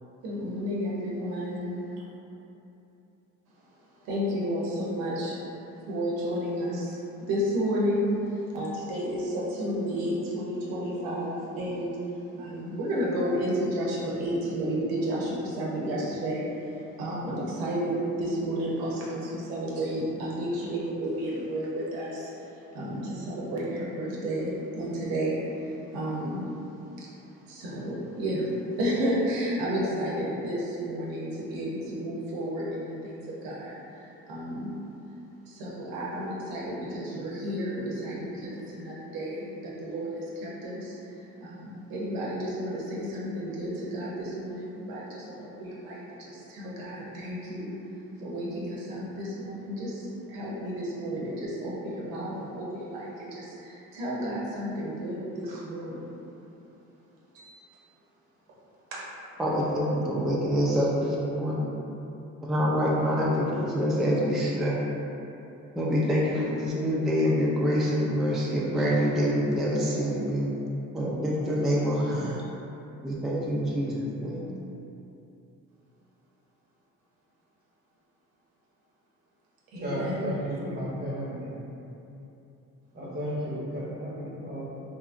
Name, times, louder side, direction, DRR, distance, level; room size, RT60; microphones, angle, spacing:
voice 1, 0.2-1.8 4.0-5.4 5.9-12.0 12.4-26.4 27.0-27.1 27.5-34.7 35.5-47.7 48.2-56.1 57.3-57.6 58.9-59.0 79.7-80.4, equal, 90° right, -5 dB, 0.6 m, -32 dB
voice 2, 59.4-61.8 62.4-64.8 65.7-70.5 70.9-72.4 73.0-74.5, equal, ahead, -5 dB, 0.3 m, -26 dB
voice 3, 79.8-81.5 82.9-84.7, equal, 30° right, -7 dB, 1.0 m, -33 dB
2.8 x 2.3 x 2.4 m, 2.9 s
supercardioid pair, 70°, 34 cm